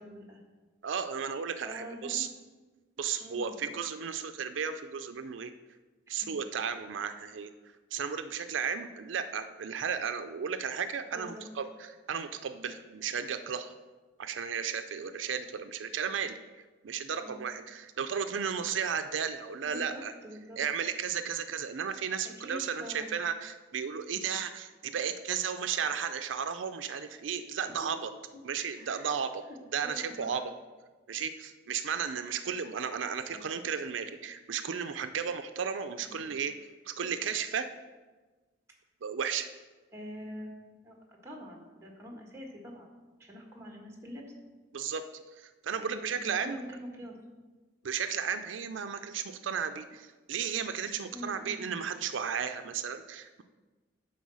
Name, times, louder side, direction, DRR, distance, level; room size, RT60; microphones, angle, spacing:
voice 1, 0.0-0.4 1.6-2.3 3.2-3.8 6.1-6.4 11.1-11.4 17.1-17.4 19.6-20.6 22.4-23.1 27.6-27.9 28.3-28.4 28.7-29.1 29.5-29.6 29.8-30.4 32.2-32.4 33.3-33.6 36.1-36.3 39.9-40.5 40.8-42.9 43.2-44.2 45.8-47.2 51.1-51.6, equal, 15° right, 0 dB, 1.5 m, -45 dB
voice 2, 0.8-2.3 3.0-5.5 6.1-7.5 7.9-13.7 14.2-16.4 16.8-20.1 20.6-28.1 28.4-29.4 29.7-30.4 31.1-36.5 36.9-37.7 39.0-39.5 44.7-45.0 45.3-46.6 47.8-53.4, right 7 dB, 90° right, 9 dB, 0.5 m, -34 dB
9.3 x 4.2 x 6.2 m, 1.3 s
head